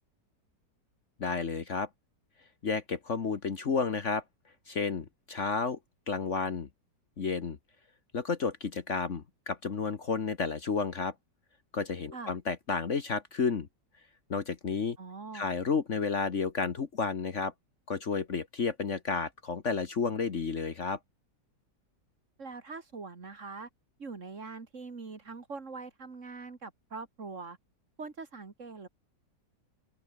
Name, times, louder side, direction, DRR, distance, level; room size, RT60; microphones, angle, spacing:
voice 1, 1.2-1.9 2.6-4.2 4.7-5.8 6.1-6.7 7.2-7.6 8.1-11.1 11.7-13.7 14.3-15.0 15.3-17.5 17.9-21.0, left 5 dB, 45° left, 1.5 m, -31 dB
voice 2, 15.0-15.5 22.4-23.7 24.0-27.6 28.0-28.9, right 4 dB, 45° right, 2.3 m, -43 dB
omnidirectional pair, 1.9 m